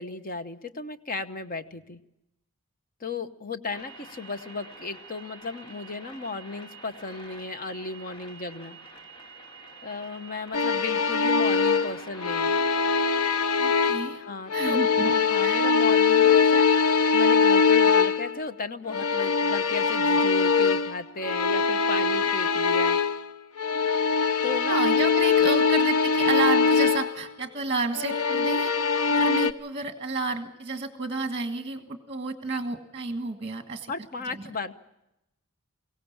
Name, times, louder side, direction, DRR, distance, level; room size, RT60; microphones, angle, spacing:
voice 1, 0.0-2.0 3.0-8.8 9.8-12.6 14.1-23.0 24.4-24.8 33.9-34.7, left 3 dB, 40° left, 10 dB, 1.0 m, -35 dB
sound 1, 3.7-13.2, right 2 dB, 20° left, 2.7 m, -47 dB
sound 2, 10.5-14.2 14.5-18.4 18.9-23.3 23.6-27.1 27.9-29.5, left 5 dB, 85° left, 0.8 m, -22 dB
voice 2, 13.6-14.2 14.5-15.1 15.4-15.6 24.7-28.7 29.1-33.9 34.3-34.4, right 3 dB, 25° right, 6 dB, 1.5 m, -31 dB
23.0 x 17.0 x 7.3 m, 0.89 s
head